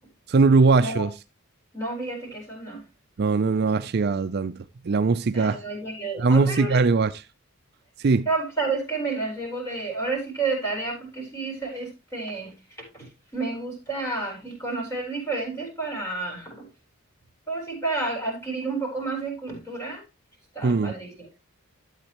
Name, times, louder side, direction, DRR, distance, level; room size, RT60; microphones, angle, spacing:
voice 1, 0.3-1.1 3.2-5.6 6.2-7.2 8.0-8.3 20.6-20.9, right 4 dB, 45° right, 0.4 m, -21 dB
voice 2, 1.7-2.8 5.3-6.8 8.3-12.5 12.9-16.6 17.5-20.0 20.5-21.3, right 3 dB, 15° left, 4.1 m, -30 dB
12.0 x 8.0 x 3.0 m
head